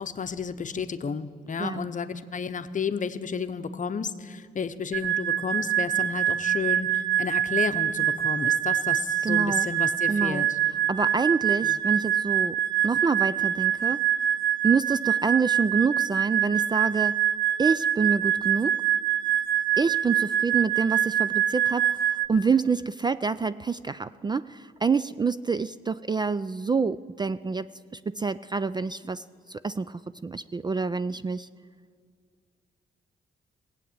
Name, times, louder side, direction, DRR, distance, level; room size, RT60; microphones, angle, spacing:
voice 1, 0.0-10.6 11.6-11.8, left 6 dB, 40° left, 11 dB, 0.8 m, -32 dB
sound 1, 4.9-22.3, right 11 dB, 70° right, 0.7 m, -25 dB
voice 2, 9.2-9.7 10.1-10.5 10.9-14.0 14.6-17.2 17.6-18.8 19.8-22.0 22.3-31.5, right 5 dB, 20° right, 15 dB, 0.3 m, -27 dB
17.0 x 8.5 x 8.8 m, 2.1 s
cardioid pair, 75°, 20 cm